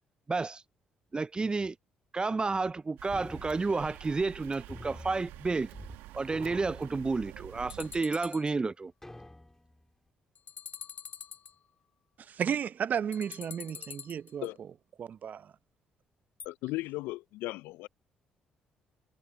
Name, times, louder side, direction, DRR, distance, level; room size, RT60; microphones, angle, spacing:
voice 1, 0.3-0.6 1.1-1.8 2.1-5.7 6.1-8.9, right 3 dB, 25° right, 0.4 m, -31 dB
sound 1, 3.0-8.0, right 17 dB, 75° right, 1.4 m, -48 dB
sound 2, 3.1-4.4 4.7-6.0 6.2-7.6 8.1-8.2 9.0-9.9, left 1 dB, 10° left, 3.8 m, -48 dB
sound 3, 7.7-8.5 10.4-11.6 13.1-14.5 16.4-16.5, left 7 dB, 55° left, 2.8 m, -45 dB
voice 2, 12.3-14.5 15.0-15.5, right 8 dB, 55° right, 0.7 m, -33 dB
voice 3, 16.4-17.9, left 20 dB, 75° left, 0.6 m, -36 dB
hypercardioid pair, 50°, 3 cm